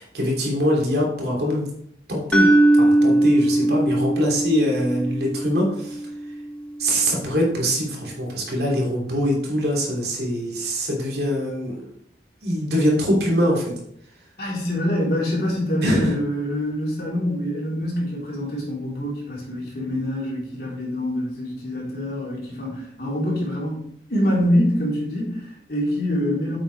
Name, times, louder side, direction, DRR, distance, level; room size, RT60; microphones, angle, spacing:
voice 1, 0.0-1.7 2.1-6.0 6.8-11.8 12.4-13.7 15.8-16.1, equal, 65° right, -2 dB, 2.9 m, -23 dB
sound 1, 2.3-6.4, right 1 dB, 5° left, 0.9 m, -20 dB
voice 2, 14.4-23.8 24.1-26.6, equal, 55° left, -5 dB, 3.8 m, -25 dB
9.2 x 7.9 x 3.4 m, 0.71 s
head